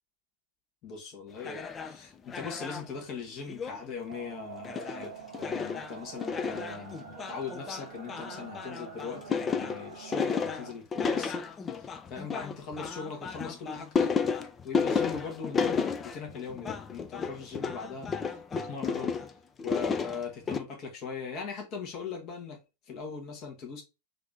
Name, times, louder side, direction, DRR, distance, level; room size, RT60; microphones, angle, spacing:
voice 1, 0.8-11.5 11.7-14.1 14.6-19.2 19.6-22.6 22.9-23.8, left 5 dB, 35° left, 1.2 m, -40 dB
sound 1, 1.4-2.0 2.3-2.9 3.5-3.8 4.1-4.2 4.6-5.1 5.3-19.3 19.6-20.6, left 5 dB, 20° left, 0.4 m, -32 dB
sound 2, 4.1-10.7, right 7 dB, 60° right, 0.9 m, -46 dB
3.2 x 2.6 x 3.4 m
figure-of-eight pair, 90°, 0 cm